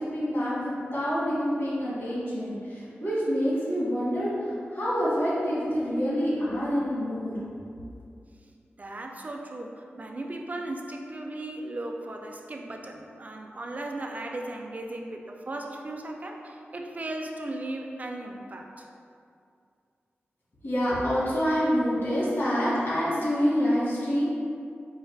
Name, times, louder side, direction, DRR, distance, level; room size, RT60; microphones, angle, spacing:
voice 1, 0.0-7.4 20.6-24.2, equal, 70° left, -9 dB, 1.4 m, -27 dB
voice 2, 8.8-18.9, right 2 dB, 40° right, 2 dB, 0.4 m, -37 dB
4.7 x 2.5 x 3.3 m, 2.4 s
wide cardioid pair, 115°, 4 cm